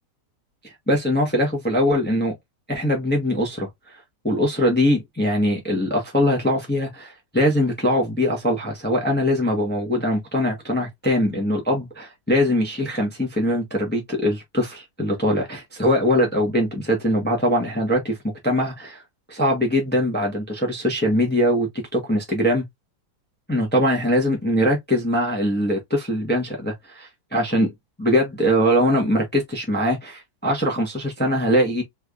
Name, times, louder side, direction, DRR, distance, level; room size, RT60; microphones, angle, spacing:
voice 1, 0.9-2.3 2.7-18.2 18.4-19.0 19.3-22.6 23.5-27.7 28.0-31.8, equal, 10° left, 0.8 m, -22 dB
3.4 x 3.4 x 2.4 m
omnidirectional pair, 1.8 m